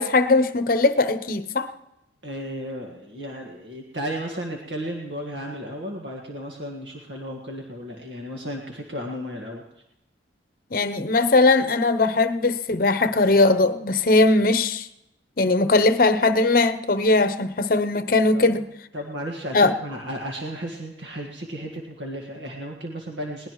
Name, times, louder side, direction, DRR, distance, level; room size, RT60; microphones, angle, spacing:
voice 1, 0.0-1.7 10.7-14.9 15.4-18.6 19.5-19.7, left 3 dB, 50° left, 0.8 m, -19 dB
voice 2, 2.2-9.6 18.3-18.7 18.9-23.5, equal, 80° right, 1.7 m, -34 dB
21.5 x 19.0 x 3.1 m
head